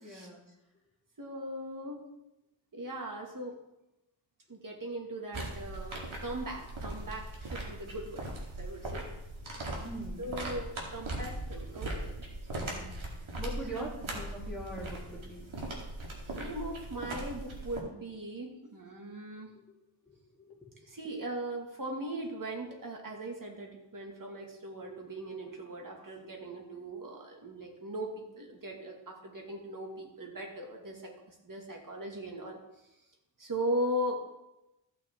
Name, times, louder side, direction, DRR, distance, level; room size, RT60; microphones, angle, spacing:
voice 1, 0.0-0.4 9.8-10.3 12.6-12.9 13.4-15.5 20.4-20.6, right 1 dB, ahead, -6 dB, 3.2 m, -42 dB
voice 2, 1.2-2.0 2.7-3.6 4.5-8.3 8.6-9.1 9.7-9.8 10.2-12.1 13.7-13.9 16.3-19.5 20.9-31.0 31.3-32.6 33.4-34.2, right 1 dB, 45° right, 1 dB, 2.2 m, -39 dB
sound 1, 5.3-17.8, right 1 dB, 80° right, 2.2 m, -39 dB
14.5 x 6.1 x 3.7 m, 0.93 s
wide cardioid pair, 70°, 47 cm